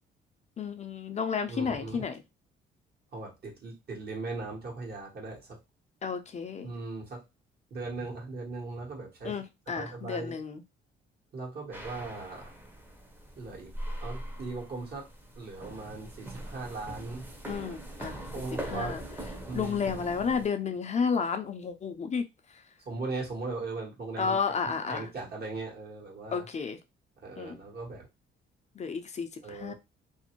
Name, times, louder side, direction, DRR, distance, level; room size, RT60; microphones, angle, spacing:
voice 1, 0.6-2.1 6.0-6.7 9.2-10.6 17.5-18.2 18.7-19.0 19.5-22.2 24.2-25.1 26.3-26.8 27.4-27.6 28.8-29.7, left 6 dB, 35° left, 7 dB, 0.4 m, -32 dB
voice 2, 1.5-2.0 3.1-5.5 6.6-7.2 7.7-9.4 9.7-10.4 11.3-12.5 13.4-13.7 14.0-15.0 15.4-17.3 18.1-19.0 19.5-19.9 22.9-24.3 24.9-26.5 27.2-28.0 29.4-29.7, right 3 dB, 50° right, -2 dB, 1.2 m, -38 dB
sound 1, 11.7-20.5, right 1 dB, 10° right, 0.7 m, -41 dB
2.5 x 2.0 x 2.9 m, 0.24 s
cardioid pair, 90°, 20 cm